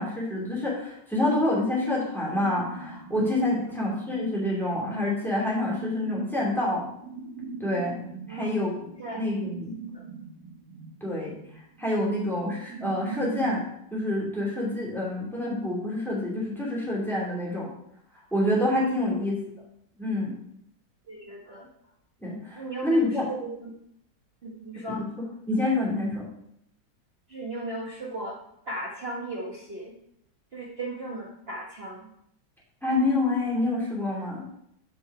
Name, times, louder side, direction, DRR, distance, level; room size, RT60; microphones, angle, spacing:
voice 1, 0.0-6.8 7.6-8.0 8.3-8.7 9.2-9.7 11.0-11.3 11.8-13.7 13.9-17.7 18.3-19.4 20.0-20.3 22.2-23.3 24.9-25.0 25.5-26.3 32.8-34.4, left 1 dB, ahead, -4 dB, 2.3 m, -27 dB
sound 1, 2.3-13.7, right 4 dB, 70° right, 1.5 m, -41 dB
voice 2, 21.1-21.7 22.5-23.7 24.4-25.3 27.3-28.4 28.6-29.9 30.5-32.1, right 2 dB, 40° right, -4 dB, 1.2 m, -36 dB
7.5 x 5.3 x 4.7 m, 0.74 s
omnidirectional pair, 2.0 m